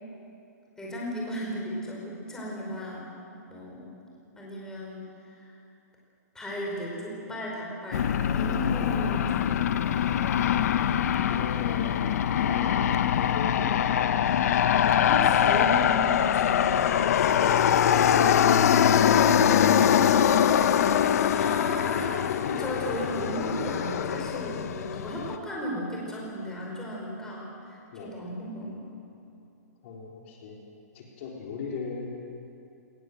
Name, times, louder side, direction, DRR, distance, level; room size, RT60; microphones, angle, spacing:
voice 1, 0.8-3.1 3.5-3.9 4.3-5.5 6.3-10.2 14.9-16.7 21.3-29.0, equal, 5° left, -4 dB, 5.0 m, -35 dB
Aircraft, 7.9-25.4, left 9 dB, 60° left, 0.9 m, -23 dB
voice 2, 10.7-12.0 12.3-14.4 14.7-15.0 17.1-17.7 27.9-28.1 29.8-30.6 30.9-32.1, left 4 dB, 45° left, -2 dB, 3.8 m, -39 dB
19.5 x 19.5 x 7.9 m, 2.6 s
hypercardioid pair, 155°, 9 cm